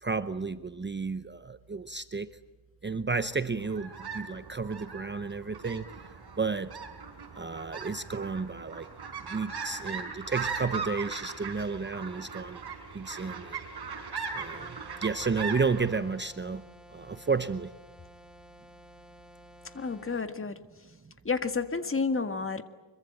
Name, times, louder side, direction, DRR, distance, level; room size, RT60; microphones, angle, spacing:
voice 1, 0.0-2.3 2.8-5.9 6.4-6.7 7.3-8.9 9.3-12.6 12.9-13.6 14.3-16.6 16.9-17.7, right 4 dB, 25° right, 12 dB, 0.8 m, -32 dB
sound 1, 3.6-16.0, right 5 dB, 55° right, 4.6 m, -39 dB
sound 2, 14.5-20.3, equal, ahead, 2.3 m, -53 dB
voice 2, 19.7-20.6 21.3-22.6, left 4 dB, 25° left, 9 dB, 1.8 m, -30 dB
25.0 x 23.0 x 8.9 m, 1.2 s
wide cardioid pair, 120°, 46 cm